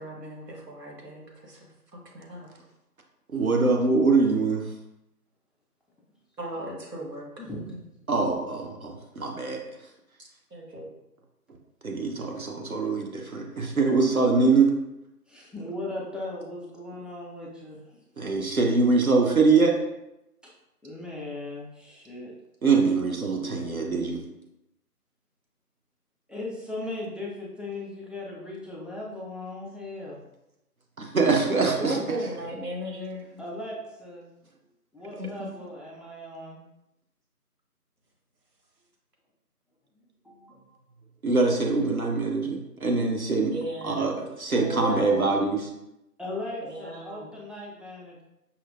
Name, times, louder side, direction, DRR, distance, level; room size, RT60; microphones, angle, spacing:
voice 1, 0.0-2.5 6.4-7.3 7.7-7.8 10.2-10.9 31.8-33.4 35.2-35.3 43.4-44.1 44.5-45.4 46.6-47.3, right 1 dB, 85° right, -1 dB, 1.2 m, -35 dB
voice 2, 3.3-4.7 8.1-9.6 11.8-14.7 18.2-19.8 22.6-24.2 31.0-32.0 41.2-43.5 43.8-45.6, right 4 dB, 60° right, 1 dB, 0.6 m, -23 dB
voice 3, 7.4-7.8 12.9-13.4 15.3-18.3 20.8-22.3 26.3-30.2 33.4-34.3 34.9-36.6 40.2-40.8 46.2-48.2, left 2 dB, ahead, -5 dB, 0.5 m, -38 dB
5.5 x 2.1 x 2.2 m, 0.88 s
figure-of-eight pair, 175°, 48 cm